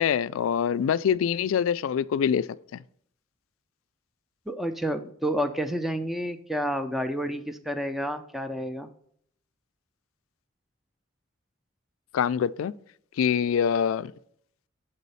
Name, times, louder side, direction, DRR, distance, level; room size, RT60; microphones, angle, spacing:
voice 1, 0.0-2.5 12.1-12.7 13.2-14.1, left 8 dB, 80° left, 0.3 m, -24 dB
voice 2, 4.5-8.9, equal, ahead, 0.4 m, -30 dB
7.8 x 4.1 x 5.4 m
head